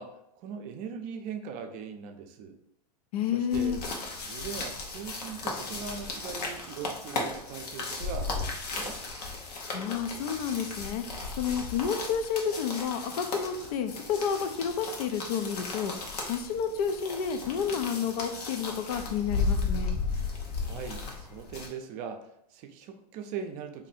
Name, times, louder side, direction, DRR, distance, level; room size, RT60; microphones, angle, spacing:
voice 1, 0.0-2.6 3.3-3.8 4.2-9.0 20.6-23.9, right 6 dB, 45° right, 6 dB, 0.5 m, -40 dB
voice 2, 3.1-3.8 9.7-11.0 11.4-15.9 16.3-19.9, left 7 dB, 70° left, 8 dB, 0.5 m, -30 dB
sound 1, 3.5-21.7, left 4 dB, 85° left, 0.9 m, -35 dB
2.6 x 2.6 x 4.0 m, 0.78 s
hypercardioid pair, 115°, 20 cm